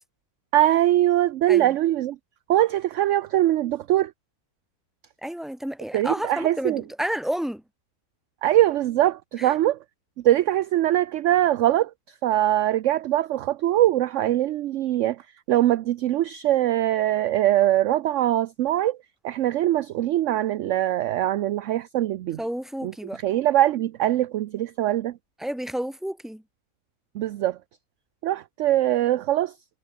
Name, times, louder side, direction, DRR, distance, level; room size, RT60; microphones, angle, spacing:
voice 1, 0.5-2.2 2.5-4.1 5.9-6.8 8.4-9.8 10.2-11.9 12.2-15.2 15.5-19.0 19.2-22.4 22.8-22.9 23.2-25.2 27.1-27.6 28.2-29.5, right 13 dB, 65° right, 0.8 m, -22 dB
voice 2, 5.2-7.6 9.4-9.5 22.4-23.2 25.4-26.4, equal, ahead, 2.5 m, -30 dB
omnidirectional pair, 1.6 m